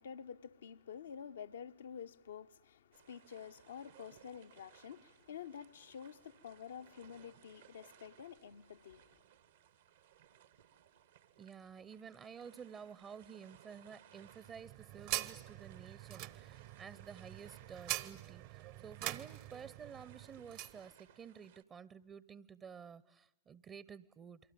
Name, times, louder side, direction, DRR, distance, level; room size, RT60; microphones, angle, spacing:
voice 1, 0.0-9.2, left 8 dB, 65° left, 0.8 m, -49 dB
sound 1, 2.9-21.6, right 10 dB, 65° right, 1.3 m, -64 dB
voice 2, 11.4-24.4, right 7 dB, 25° right, 0.8 m, -52 dB
sound 2, 14.2-20.8, right 14 dB, 45° right, 1.0 m, -44 dB
28.5 x 24.0 x 6.9 m
figure-of-eight pair, 90°, 0 cm